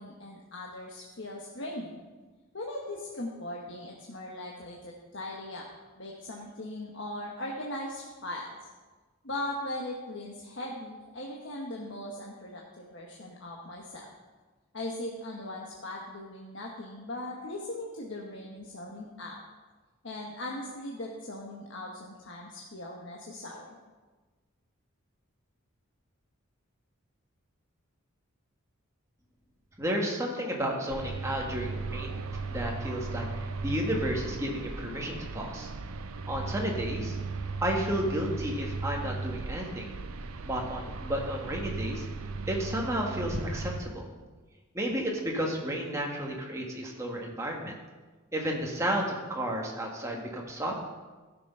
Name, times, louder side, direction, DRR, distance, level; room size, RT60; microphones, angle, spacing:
voice 1, 0.0-2.0 2.5-5.6 6.0-8.6 9.2-14.1 14.7-19.4 20.0-23.7, left 1 dB, 60° left, -2 dB, 1.2 m, -39 dB
voice 2, 29.8-35.7 36.3-37.2 37.6-39.9 40.4-42.1 42.5-44.1 44.7-47.8 48.3-50.9, equal, 15° right, -1 dB, 1.5 m, -32 dB
sound 1, 30.9-43.8, right 3 dB, 85° right, 0.6 m, -36 dB
14.0 x 6.2 x 5.5 m, 1.3 s
head